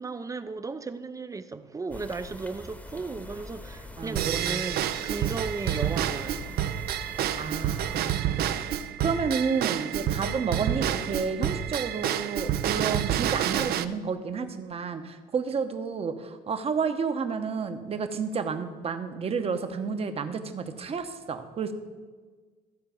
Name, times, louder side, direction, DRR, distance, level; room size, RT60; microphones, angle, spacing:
voice 1, 0.0-6.6, right 4 dB, 20° right, 0.5 m, -35 dB
sound 1, 1.9-8.1, left 1 dB, 10° left, 1.0 m, -44 dB
voice 2, 4.0-4.7 7.4-8.7 9.0-21.7, right 5 dB, 35° right, 0.9 m, -31 dB
Drum kit / Drum / Bell, 4.2-13.8, right 10 dB, 65° right, 0.6 m, -29 dB
13.5 x 4.7 x 7.0 m
cardioid pair, 110°, 17 cm